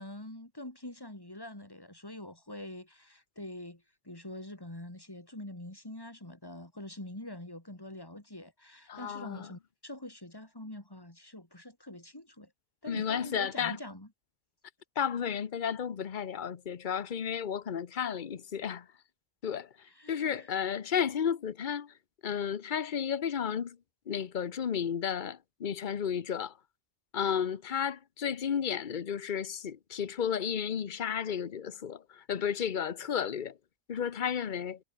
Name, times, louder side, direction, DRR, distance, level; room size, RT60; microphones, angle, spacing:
voice 1, 0.0-12.5 12.8-14.1 19.9-20.5, left 1 dB, 20° left, 4.1 m, -45 dB
voice 2, 8.9-9.5 12.9-13.8 15.0-18.9 19.4-21.9 22.2-23.8 24.1-26.5 27.1-33.6 33.9-34.8, left 8 dB, 50° left, 1.0 m, -33 dB
omnidirectional pair, 1.1 m